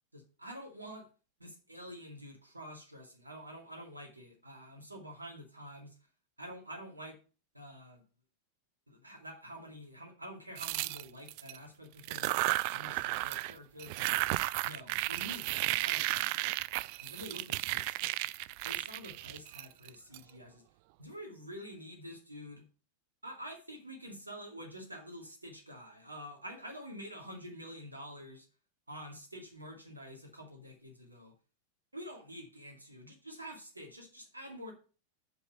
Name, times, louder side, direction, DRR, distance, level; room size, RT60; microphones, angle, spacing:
voice 1, 0.1-1.1 1.4-6.1 6.4-7.2 7.5-8.0 8.9-12.3 12.7-14.2 14.6-16.3 17.0-18.1 18.6-20.6 21.0-22.6 23.2-28.5 28.9-31.3 31.9-34.7, equal, 80° right, 1 dB, 2.3 m, -48 dB
sound 1, 10.6-11.6 12.0-13.5 13.8-20.2, right 20 dB, 45° right, 0.4 m, -34 dB
7.1 x 6.4 x 7.1 m, 0.36 s
figure-of-eight pair, 90°, 0 cm